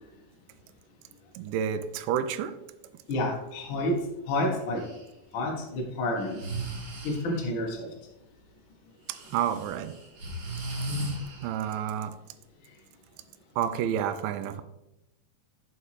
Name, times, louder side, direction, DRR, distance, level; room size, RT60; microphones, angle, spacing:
voice 1, 1.4-2.6 9.1-10.0 11.4-12.2 13.6-14.6, right 9 dB, 80° right, 10 dB, 2.1 m, -30 dB
voice 2, 3.1-4.9 5.3-6.4 7.0-7.9, left 1 dB, 85° left, 0 dB, 1.1 m, -29 dB
Breathing, 4.8-5.0 6.2-7.4 9.1-11.8, right 1 dB, 55° right, 2.8 m, -36 dB
9.7 x 5.4 x 3.2 m, 0.92 s
omnidirectional pair, 4.3 m